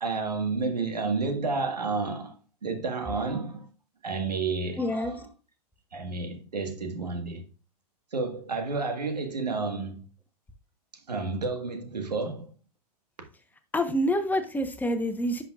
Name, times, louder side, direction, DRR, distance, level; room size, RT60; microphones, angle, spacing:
voice 1, 0.0-2.3 2.6-3.6 4.0-5.3 5.9-7.4 8.1-10.0 11.1-12.5, right 4 dB, 85° right, 1.6 m, -30 dB
voice 2, 4.8-5.1 13.7-15.4, equal, 10° left, 1.0 m, -27 dB
10.5 x 5.7 x 2.4 m
hypercardioid pair, 100°, 20 cm